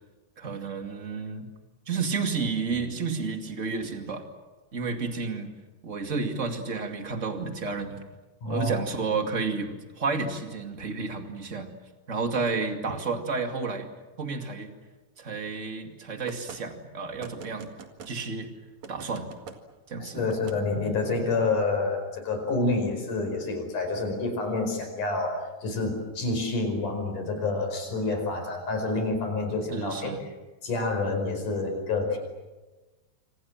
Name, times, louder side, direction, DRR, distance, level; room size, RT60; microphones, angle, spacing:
voice 1, 0.4-1.5 1.9-4.2 4.7-5.5 5.8-8.0 8.4-11.7 12.1-13.9 14.2-14.7 15.2-17.7 18.0-18.5 18.9-19.3 19.9-20.3 29.7-30.2, right 4 dB, 30° right, 5 dB, 1.5 m, -31 dB
voice 2, 8.4-8.7 20.0-30.1 30.6-32.2, left 3 dB, 45° left, 5 dB, 6.2 m, -28 dB
sound 1, 16.3-16.6 17.2-18.1 18.8-19.6 20.3-20.6, right 6 dB, 50° right, 2.6 m, -42 dB
27.5 x 26.5 x 7.4 m, 1.2 s
omnidirectional pair, 5.1 m